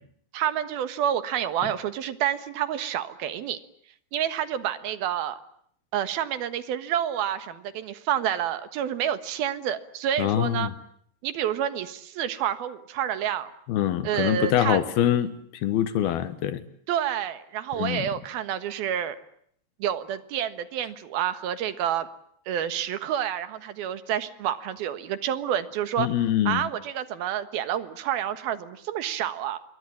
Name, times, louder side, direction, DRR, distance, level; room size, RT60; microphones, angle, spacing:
voice 1, 0.3-3.6 4.1-5.4 5.9-10.7 11.2-13.5 14.0-14.8 16.9-19.2 19.8-22.1 22.5-26.1 26.5-29.6, right 10 dB, 75° right, 12 dB, 3.3 m, -28 dB
voice 2, 10.2-10.7 13.7-16.6 17.8-18.1 26.0-26.7, left 11 dB, 75° left, 13 dB, 3.3 m, -24 dB
27.0 x 23.0 x 8.6 m, 0.66 s
omnidirectional pair, 4.6 m